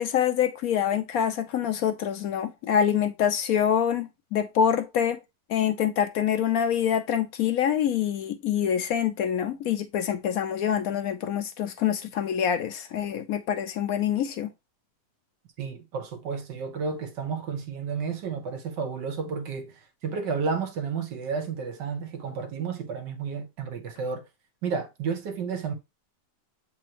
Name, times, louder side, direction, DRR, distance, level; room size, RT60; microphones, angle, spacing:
voice 1, 0.0-5.2 5.5-14.5, left 9 dB, 70° left, 0.9 m, -26 dB
voice 2, 15.6-24.2 24.6-25.7, right 5 dB, 85° right, 1.8 m, -32 dB
7.7 x 4.2 x 3.0 m
omnidirectional pair, 1.8 m